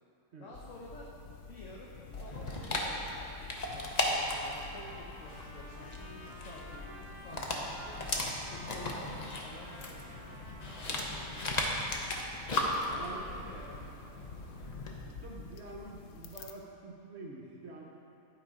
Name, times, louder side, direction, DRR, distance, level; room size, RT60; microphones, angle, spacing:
voice 1, 0.4-1.1 1.5-8.0 8.5-10.3 10.8-11.6 12.2-13.8, left 2 dB, 65° left, -4 dB, 1.2 m, -51 dB
sound 1, 0.5-16.5, left 4 dB, 90° left, 0.4 m, -50 dB
Dog, 2.1-15.0, left 2 dB, 40° left, 0.7 m, -37 dB
Trumpet, 3.0-11.4, right 1 dB, 30° right, 0.8 m, -52 dB
voice 2, 12.9-13.3 15.1-17.8, right 2 dB, 55° right, -2 dB, 1.0 m, -47 dB
11.0 x 4.4 x 4.8 m, 3.0 s
omnidirectional pair, 1.5 m